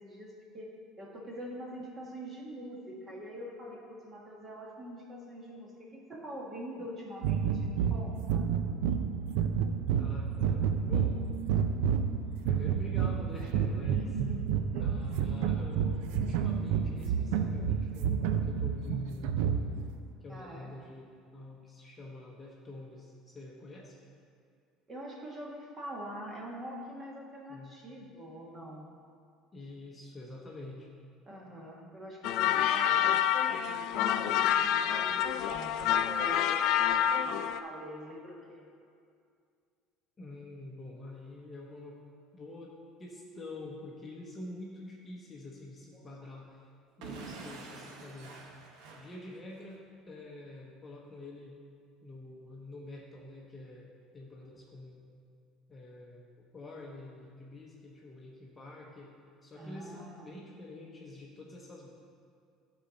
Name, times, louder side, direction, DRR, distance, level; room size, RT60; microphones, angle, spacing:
voice 1, 0.0-8.5 13.9-14.5 14.7-14.9 20.3-20.7 24.9-28.9 31.2-33.1 33.5-38.7 45.9-46.3 59.6-60.3, equal, 25° right, -2 dB, 1.4 m, -44 dB
sound 1, 7.2-19.9, right 7 dB, 90° right, 0.5 m, -30 dB
voice 2, 10.0-11.3 12.5-14.1 14.8-19.4 20.2-24.0 27.5-27.7 29.5-30.9 40.2-42.1 42.3-42.7 43.0-46.6 47.0-48.4 48.9-51.6 52.0-55.0 55.7-56.2 56.5-59.1 59.4-61.9, left 2 dB, 20° left, -2 dB, 0.8 m, -47 dB
sound 2, 32.2-37.6, left 10 dB, 60° left, 0.3 m, -28 dB
Explosion / Shatter, 47.0-49.8, right 4 dB, 70° right, 1.0 m, -47 dB
11.0 x 4.2 x 5.1 m, 2.3 s
cardioid pair, 150°, 0 cm